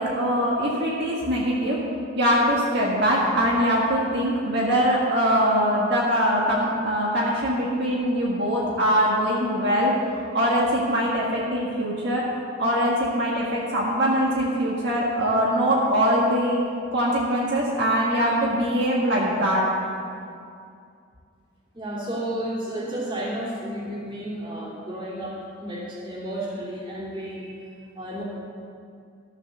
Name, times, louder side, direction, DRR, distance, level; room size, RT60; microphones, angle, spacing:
voice 1, 0.0-1.8 2.2-12.3 12.6-16.6 16.9-19.7, equal, 55° right, -5 dB, 1.8 m, -22 dB
voice 2, 21.7-27.6 28.0-28.2, right 1 dB, 25° right, -6 dB, 2.9 m, -32 dB
13.5 x 7.2 x 6.9 m, 2.4 s
head